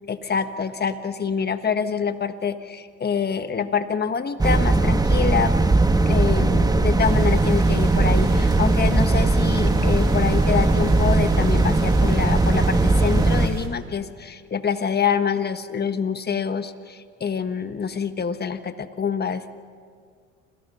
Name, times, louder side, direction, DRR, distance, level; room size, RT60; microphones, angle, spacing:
voice 1, 0.1-5.5 6.0-19.4, left 6 dB, 30° left, 10 dB, 1.4 m, -26 dB
sound 1, 4.4-13.5, right 2 dB, 10° right, 1.5 m, -19 dB
sound 2, 7.0-13.7, right 5 dB, 55° right, 4.2 m, -39 dB
29.0 x 26.5 x 5.7 m, 2.1 s
supercardioid pair, 80°, 32 cm